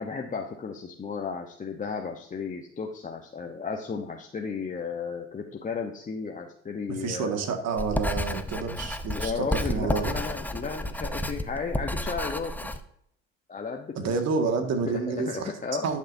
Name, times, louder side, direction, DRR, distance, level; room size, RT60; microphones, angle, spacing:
voice 1, 0.0-7.4 9.2-12.6 13.5-14.1 14.8-15.9, left 5 dB, 25° left, 2 dB, 1.0 m, -34 dB
voice 2, 6.9-10.2 14.0-15.5 15.8-16.0, right 5 dB, 60° right, 5 dB, 1.9 m, -29 dB
Writing, 7.8-12.8, left 1 dB, 5° left, 0.7 m, -31 dB
11.0 x 6.6 x 2.7 m, 0.70 s
supercardioid pair, 90°, 29 cm